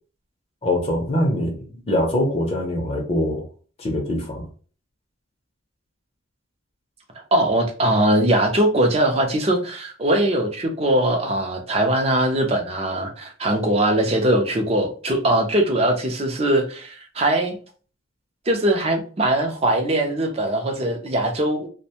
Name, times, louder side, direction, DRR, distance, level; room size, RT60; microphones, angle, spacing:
voice 1, 0.6-3.5 3.8-4.5, left 1 dB, 30° left, 0.6 m, -23 dB
voice 2, 7.3-17.6 18.5-21.7, right 1 dB, 30° right, 0.5 m, -21 dB
2.5 x 2.1 x 2.8 m
head